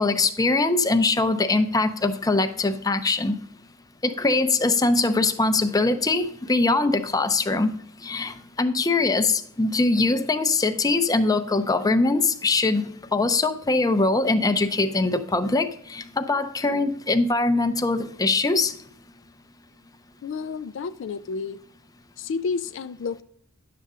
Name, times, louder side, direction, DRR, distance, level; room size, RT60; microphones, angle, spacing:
voice 1, 0.0-3.4 4.0-7.7 8.0-18.7, left 3 dB, 20° left, 8 dB, 0.6 m, -22 dB
voice 2, 20.2-21.6 22.2-23.2, left 5 dB, 60° left, 12 dB, 0.4 m, -30 dB
10.5 x 6.7 x 3.6 m, 0.65 s
head